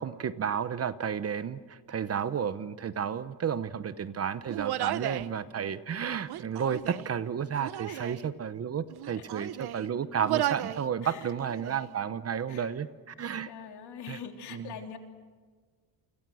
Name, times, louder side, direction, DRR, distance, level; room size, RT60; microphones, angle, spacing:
voice 1, 0.0-13.5 14.1-14.2 14.5-14.7, right 7 dB, 35° right, 13 dB, 0.9 m, -32 dB
Human voice, 4.5-5.3 6.2-7.1 7.6-8.2 8.9-9.9 10.2-10.8 11.2-11.9, right 14 dB, 60° right, 0.9 m, -34 dB
voice 2, 4.8-5.1 7.9-8.2 9.2-9.3 11.0-11.3 12.5-12.7 13.5-15.0, left 7 dB, 65° left, 3 dB, 3.4 m, -44 dB
29.5 x 25.5 x 6.3 m, 1.5 s
cardioid pair, 135°, 43 cm